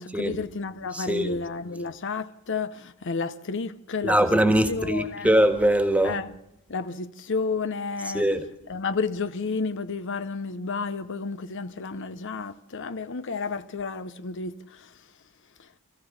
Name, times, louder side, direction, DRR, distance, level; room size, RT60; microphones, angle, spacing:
voice 1, 0.0-4.2 4.7-5.3 6.0-6.3 6.7-8.3 8.7-15.0 15.6-15.7, left 4 dB, 60° left, 0.8 m, -31 dB
voice 2, 0.9-1.4 4.0-6.2 8.1-8.4, right 1 dB, 5° right, 1.7 m, -22 dB
25.5 x 15.0 x 7.2 m
head